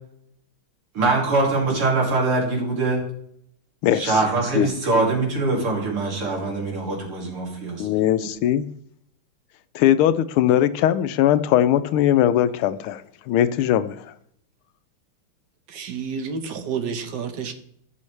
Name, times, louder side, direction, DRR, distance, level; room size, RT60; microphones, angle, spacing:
voice 1, 1.0-3.0 3.9-7.9, right 3 dB, 80° right, 3.6 m, -23 dB
voice 2, 3.8-4.2 4.5-4.7 7.8-8.7 9.7-13.0 13.3-14.1, left 11 dB, 80° left, 1.4 m, -20 dB
voice 3, 15.7-17.5, right 6 dB, 60° right, 1.5 m, -30 dB
15.0 x 6.3 x 3.3 m
omnidirectional pair, 2.4 m